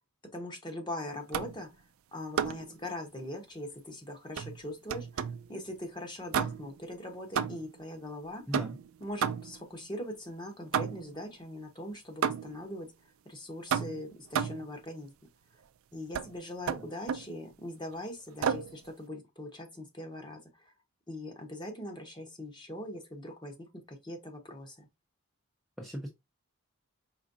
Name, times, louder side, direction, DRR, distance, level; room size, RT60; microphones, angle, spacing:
voice 1, 0.3-1.7 2.1-8.4 9.0-12.9 13.2-15.1 15.9-20.4 21.1-24.9, left 1 dB, 20° left, 1.1 m, -41 dB
sound 1, 1.3-1.7 2.4-2.7 4.4-5.5 6.3-6.8 7.4-7.8 8.5-9.7 10.7-11.2 12.2-12.7 13.7-14.7 16.1-16.3 16.7-17.3 18.4-18.8, right 7 dB, 70° right, 0.4 m, -32 dB
voice 2, 25.8-26.1, equal, ahead, 0.7 m, -38 dB
5.1 x 3.6 x 2.6 m
head